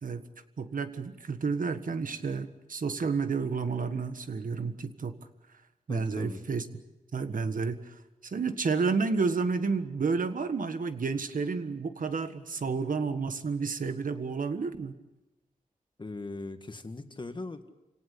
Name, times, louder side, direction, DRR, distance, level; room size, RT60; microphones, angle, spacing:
voice 1, 0.6-5.2 5.9-6.6 7.1-7.9 8.2-14.9, right 4 dB, 75° right, 9 dB, 1.6 m, -30 dB
voice 2, 5.9-6.4 16.0-17.7, left 2 dB, 35° left, 7 dB, 1.8 m, -40 dB
28.0 x 18.0 x 8.5 m, 1.0 s
wide cardioid pair, 105°, 14 cm